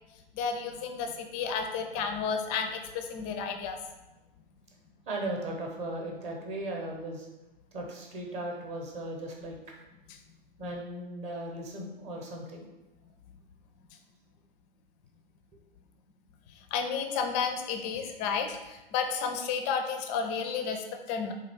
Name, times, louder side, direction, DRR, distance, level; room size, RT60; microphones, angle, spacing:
voice 1, 0.3-3.8 16.7-21.3, left 6 dB, 25° left, 6 dB, 0.4 m, -32 dB
voice 2, 5.1-7.3 7.7-9.6 10.6-12.7, right 1 dB, 25° right, 0 dB, 0.8 m, -37 dB
3.9 x 2.8 x 4.5 m, 1.0 s
figure-of-eight pair, 100°, 29 cm